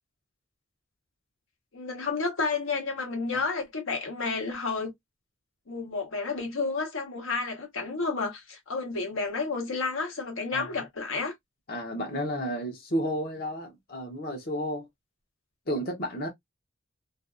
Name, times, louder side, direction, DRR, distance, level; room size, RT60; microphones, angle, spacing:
voice 1, 1.7-4.9 5.7-11.3, left 4 dB, 80° left, 0.9 m, -31 dB
voice 2, 11.7-14.9 15.7-16.3, equal, 50° left, 0.7 m, -32 dB
2.6 x 2.3 x 2.4 m
head